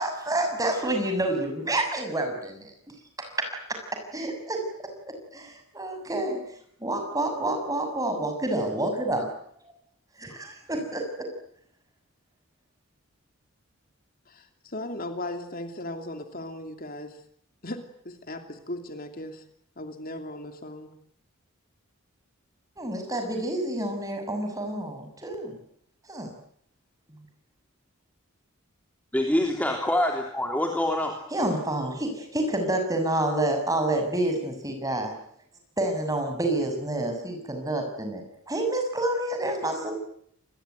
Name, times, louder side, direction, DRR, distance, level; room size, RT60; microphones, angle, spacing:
voice 1, 0.0-2.7 3.2-4.9 5.3-6.4 6.8-9.3 10.2-11.3 22.8-25.6 26.1-26.3 31.3-35.1 35.8-39.9, right 1 dB, 15° right, 5 dB, 6.6 m, -28 dB
voice 2, 14.3-17.2 17.6-19.4 19.8-20.9, left 1 dB, 45° left, 6 dB, 2.8 m, -37 dB
voice 3, 29.1-31.2, left 1 dB, 5° left, 2 dB, 3.3 m, -26 dB
27.5 x 22.0 x 9.4 m, 0.68 s
head